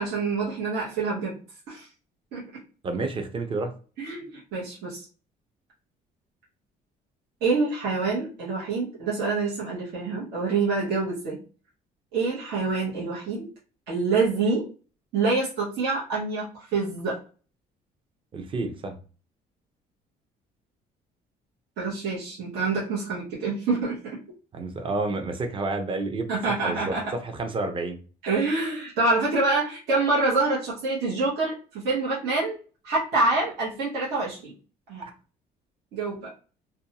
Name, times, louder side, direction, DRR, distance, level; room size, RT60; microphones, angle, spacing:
voice 1, 0.0-1.4 1.7-1.9 2.3-2.4 4.0-5.0 7.4-11.4 12.1-13.5 13.9-14.6 15.1-17.2 21.8-24.2 26.3-27.1 28.2-32.6 32.8-34.5 34.9-35.1 35.9-36.3, right 3 dB, 75° right, -6 dB, 1.0 m, -26 dB
voice 2, 2.8-3.7 18.3-19.0 24.5-26.3 26.6-28.0 35.0-35.1, right 3 dB, 30° right, 6 dB, 0.6 m, -30 dB
2.5 x 2.2 x 2.8 m, 0.37 s
cardioid pair, 110°, 17 cm